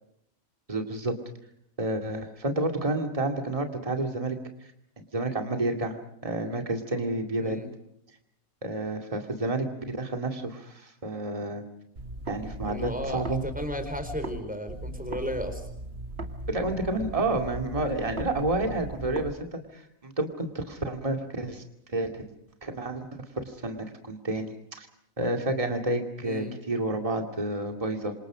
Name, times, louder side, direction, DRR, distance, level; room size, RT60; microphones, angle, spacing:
voice 1, 0.7-1.2 1.8-4.4 5.1-6.0 6.2-7.6 8.6-11.6 12.3-13.4 16.5-21.6 21.9-22.2 22.6-23.1 23.4-24.9 25.2-28.1, right 2 dB, 25° right, 4 dB, 2.5 m, -30 dB
sound 1, 12.0-14.4 14.7-19.3, right 2 dB, 50° right, 2.5 m, -38 dB
voice 2, 12.6-15.7 26.2-26.6, left 1 dB, 5° right, 8 dB, 4.2 m, -34 dB
28.5 x 26.0 x 5.1 m, 0.73 s
omnidirectional pair, 1.4 m